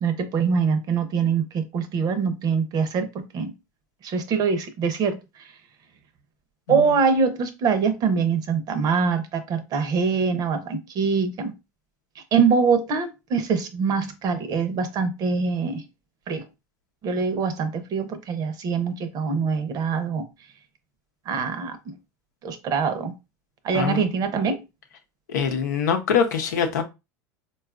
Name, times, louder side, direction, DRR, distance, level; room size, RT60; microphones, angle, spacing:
voice 1, 0.0-3.5 4.0-5.4 6.7-11.5 12.2-15.8 16.3-16.4 17.0-20.2 21.3-21.9 22.4-23.1 23.6-24.6, right 5 dB, 45° right, 0.7 m, -24 dB
voice 2, 23.7-24.1 25.3-26.8, left 7 dB, 90° left, 0.7 m, -24 dB
3.9 x 2.4 x 2.4 m
hypercardioid pair, 100°, 9 cm